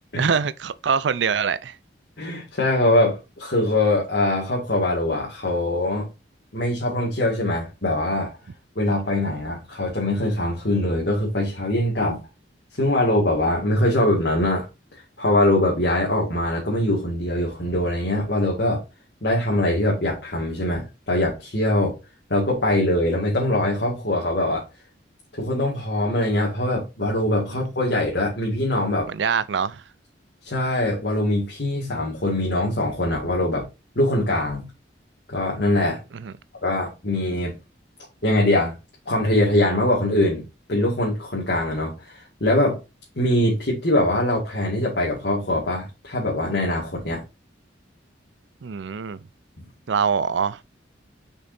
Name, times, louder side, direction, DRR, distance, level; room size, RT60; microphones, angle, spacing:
voice 1, 0.2-1.8 8.9-9.4 29.1-29.8 36.1-36.3 48.6-49.2 49.9-50.6, right 6 dB, 70° right, 0.5 m, -24 dB
voice 2, 2.2-6.1 6.5-8.3 8.8-12.2 12.8-14.7 15.2-18.8 19.2-21.9 22.3-24.6 25.3-29.1 30.4-33.6 34.0-34.7 35.3-36.0 36.6-37.5 38.2-38.7 39.1-40.4 40.7-42.8 43.2-47.2, left 1 dB, 60° left, 2.1 m, -22 dB
6.6 x 5.4 x 2.6 m
head